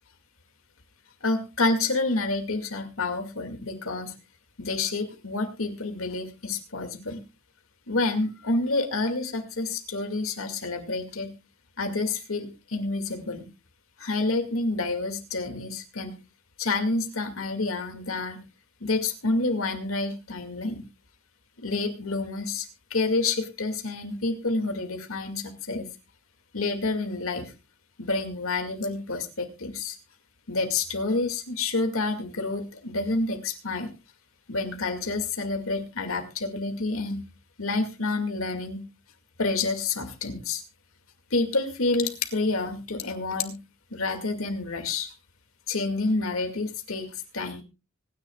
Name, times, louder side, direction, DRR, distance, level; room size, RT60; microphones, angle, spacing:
voice 1, 1.2-4.1 4.6-7.2 7.9-11.3 11.8-13.5 14.0-16.2 16.6-18.4 18.8-20.8 21.6-25.9 26.5-27.5 28.0-30.0 30.5-33.9 34.5-37.2 37.6-38.8 39.4-40.6 41.3-43.6 43.9-45.1 45.7-47.6, left 3 dB, 85° left, 6 dB, 2.2 m, -28 dB
25.0 x 10.0 x 2.4 m, 0.28 s
head